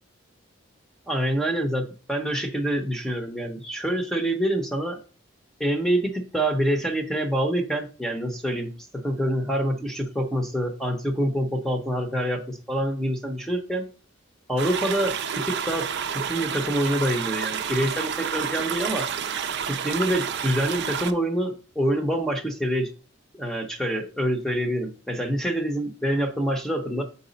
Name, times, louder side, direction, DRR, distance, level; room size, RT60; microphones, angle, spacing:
voice 1, 1.1-5.0 5.6-13.9 14.5-15.9 16.3-19.1 19.7-22.9 23.4-27.0, right 1 dB, ahead, 4 dB, 0.7 m, -26 dB
sound 1, 14.6-21.1, right 7 dB, 60° right, 0.5 m, -30 dB
6.0 x 4.0 x 3.9 m, 0.38 s
head